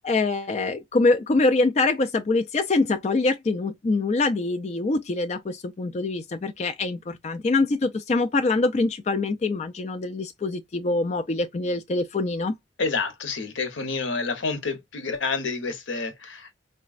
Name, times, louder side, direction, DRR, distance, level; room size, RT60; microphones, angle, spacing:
voice 1, 0.0-12.5, left 3 dB, 35° left, 0.3 m, -24 dB
voice 2, 12.8-16.5, left 4 dB, 85° left, 0.9 m, -29 dB
4.0 x 2.2 x 2.4 m
head